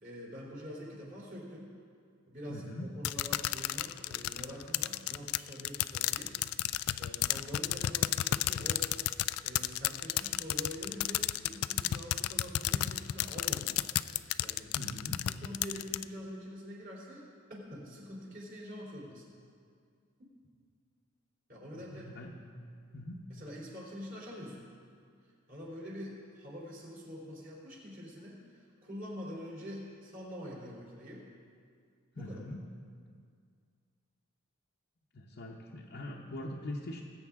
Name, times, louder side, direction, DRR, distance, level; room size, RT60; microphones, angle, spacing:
voice 1, 0.0-1.7 2.3-6.3 7.0-8.9 9.4-13.8 14.4-14.7 15.4-17.2 17.5-19.2 21.5-22.1 23.3-24.6 25.5-31.3 32.1-32.4, equal, 40° right, -4 dB, 3.3 m, -45 dB
voice 2, 2.5-2.9 14.7-15.2 21.7-22.3 22.9-23.3 32.1-32.7 35.1-37.0, left 1 dB, 50° left, -2 dB, 0.9 m, -42 dB
sound 1, 3.0-16.0, left 14 dB, 75° left, 0.3 m, -32 dB
19.5 x 8.4 x 3.6 m, 2.2 s
head